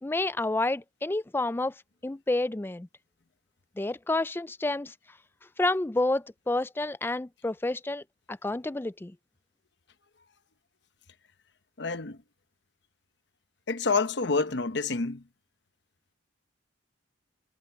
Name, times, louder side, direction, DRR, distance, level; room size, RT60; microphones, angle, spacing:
voice 1, 0.0-1.7 2.0-2.9 3.8-4.9 5.6-9.1, left 2 dB, 10° left, 0.3 m, -29 dB
voice 2, 11.8-12.2 13.7-15.2, left 4 dB, 60° left, 1.0 m, -28 dB
head